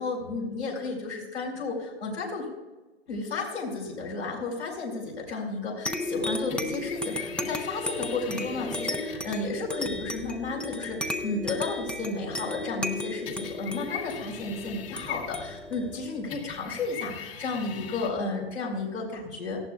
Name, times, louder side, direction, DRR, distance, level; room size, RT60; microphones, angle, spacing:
voice 1, 0.0-2.5 3.1-19.6, left 3 dB, 85° left, -1 dB, 5.3 m, -33 dB
sound 1, 5.9-16.9, left 1 dB, 5° left, 0.5 m, -35 dB
sound 2, 6.5-9.3 13.3-15.7 16.3-18.1, left 8 dB, 55° left, 1.9 m, -41 dB
18.0 x 14.5 x 2.4 m, 1.1 s
hypercardioid pair, 115°, 33 cm